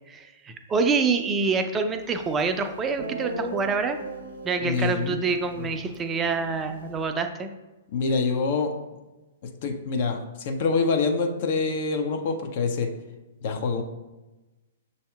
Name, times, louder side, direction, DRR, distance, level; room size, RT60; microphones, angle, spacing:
voice 1, 0.1-4.0 4.4-7.5, right 4 dB, 20° right, 7 dB, 0.4 m, -26 dB
Guitar, 2.4-2.5 3.0-7.1, right 2 dB, 60° right, 0.7 m, -38 dB
voice 2, 4.6-5.3 5.6-5.7 7.9-8.7 9.6-12.9 13.4-13.8, left 4 dB, 50° left, 5 dB, 0.5 m, -25 dB
6.8 x 2.7 x 2.3 m, 1.1 s
figure-of-eight pair, 115°, 0 cm